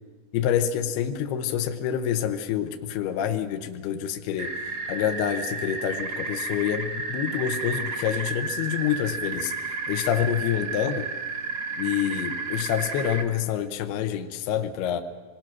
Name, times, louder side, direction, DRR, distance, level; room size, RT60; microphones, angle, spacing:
voice 1, 0.3-4.5 4.9-11.1 11.8-15.0, left 9 dB, 75° left, 6 dB, 2.7 m, -27 dB
sound 1, 4.4-13.2, right 4 dB, 80° right, 0.9 m, -32 dB
27.0 x 20.5 x 6.1 m, 1.5 s
omnidirectional pair, 5.1 m